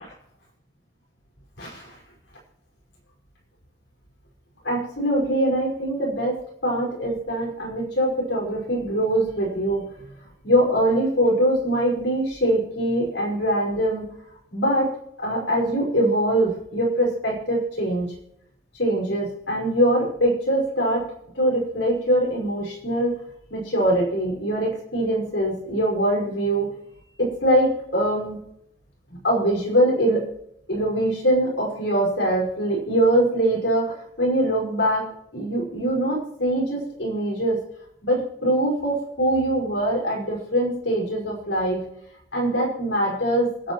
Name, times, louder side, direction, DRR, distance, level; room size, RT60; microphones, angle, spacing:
voice 1, 1.6-2.0 4.6-9.9 10.4-14.1 14.5-14.9 15.2-18.1 18.7-21.0 21.4-23.1 23.5-26.7 27.2-28.4 29.2-30.3 30.7-35.0 35.3-37.6 38.0-41.9 42.3-43.7, right 1 dB, 75° left, -2 dB, 5.3 m, -23 dB
27.0 x 9.1 x 3.1 m, 0.75 s
head